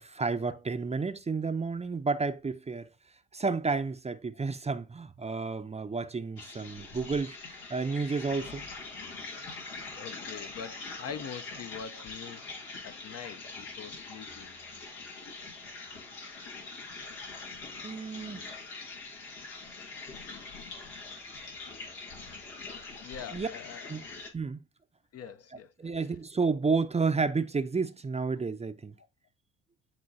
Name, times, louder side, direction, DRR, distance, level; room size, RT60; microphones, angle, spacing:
voice 1, 0.0-2.9 3.3-8.6 17.8-18.5 23.3-23.5 23.9-24.0 24.3-24.6 25.8-29.0, right 4 dB, 20° right, 0.6 m, -31 dB
sound 1, 6.4-24.3, left 3 dB, 85° left, 2.0 m, -43 dB
voice 2, 10.0-12.5 12.8-14.6 18.2-18.6 23.0-24.2 25.1-26.0, left 7 dB, 45° left, 0.6 m, -44 dB
11.0 x 3.8 x 2.7 m
hypercardioid pair, 60°, 35 cm